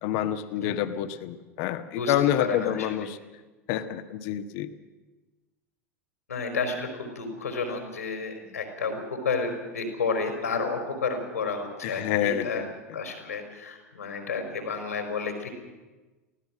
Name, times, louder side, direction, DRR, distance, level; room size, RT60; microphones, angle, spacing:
voice 1, 0.0-3.2 3.7-4.7 11.8-12.7, left 11 dB, 55° left, 9 dB, 1.4 m, -28 dB
voice 2, 1.9-3.2 6.3-12.6 12.9-15.5, left 4 dB, 85° left, 5 dB, 4.7 m, -31 dB
24.0 x 16.5 x 7.5 m, 1.2 s
figure-of-eight pair, 85°, 8 cm